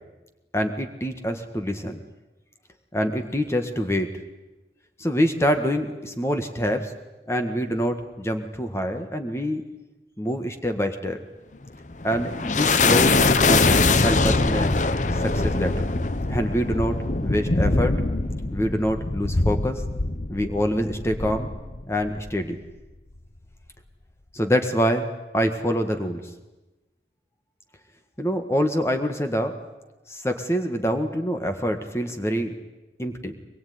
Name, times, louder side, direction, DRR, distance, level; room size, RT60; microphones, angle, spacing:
voice 1, 0.5-2.0 2.9-4.1 5.0-6.9 7.3-9.6 10.2-11.2 12.0-13.1 13.4-13.7 13.9-14.7 15.2-15.9 16.3-17.0 17.2-17.9 18.5-19.8 20.3-21.5 21.9-22.6 24.3-25.1 25.3-26.2 28.2-29.5 30.1-32.5 33.0-33.3, equal, 15° left, 6 dB, 1.7 m, -25 dB
sound 1, 11.7-22.4, left 3 dB, 45° left, 0.9 m, -23 dB
23.5 x 21.5 x 9.5 m, 1.1 s
head